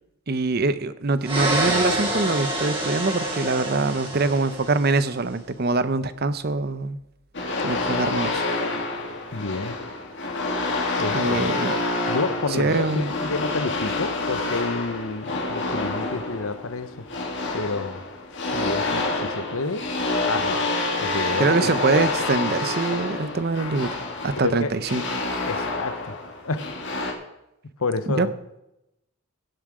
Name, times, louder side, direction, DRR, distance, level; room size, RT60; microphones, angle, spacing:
voice 1, 0.3-7.0 7.6-8.5 11.1-11.7 12.5-13.1 21.4-25.0 28.2-28.3, right 3 dB, 45° right, 14 dB, 0.7 m, -24 dB
sound 1, 1.2-5.1, right 1 dB, 25° right, 3.3 m, -27 dB
sound 2, 7.3-27.1, left 2 dB, 55° left, 2.2 m, -28 dB
voice 2, 9.3-9.8 11.0-11.5 12.1-17.0 17.5-18.0 18.5-19.8 20.3-20.6 21.0-21.7 24.4-24.7 25.5-26.2 26.4-26.7 27.8-28.3, left 3 dB, 75° left, 12 dB, 0.9 m, -29 dB
16.5 x 7.5 x 4.9 m, 0.87 s
head